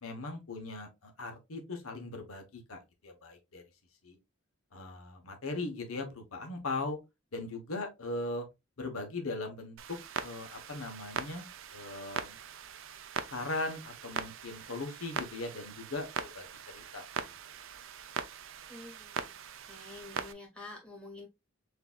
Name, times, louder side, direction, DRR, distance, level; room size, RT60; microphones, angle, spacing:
voice 1, 0.0-3.6 4.0-4.2 4.7-7.0 7.3-8.5 8.8-12.4 13.3-17.3, left 2 dB, 80° left, 1.0 m, -39 dB
Clock, 9.8-20.3, right 7 dB, 65° right, 0.5 m, -41 dB
voice 2, 18.7-19.4 19.6-21.3, left 2 dB, 5° left, 1.5 m, -48 dB
6.6 x 2.7 x 2.3 m
head